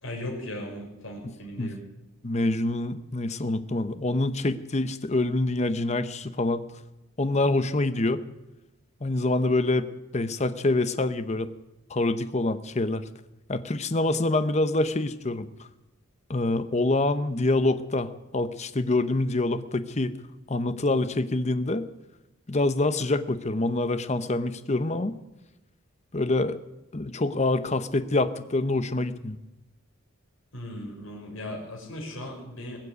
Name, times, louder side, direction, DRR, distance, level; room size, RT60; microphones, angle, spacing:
voice 1, 0.0-1.8 30.5-32.8, left 1 dB, 75° left, 0 dB, 4.9 m, -37 dB
voice 2, 2.2-6.6 7.2-8.2 9.0-9.9 10.1-11.5 11.9-13.0 13.5-15.5 16.3-20.1 20.5-21.8 22.5-25.2 26.1-26.6 26.9-29.4, left 2 dB, 35° left, 11 dB, 0.9 m, -26 dB
21.0 x 7.5 x 8.1 m, 0.96 s
head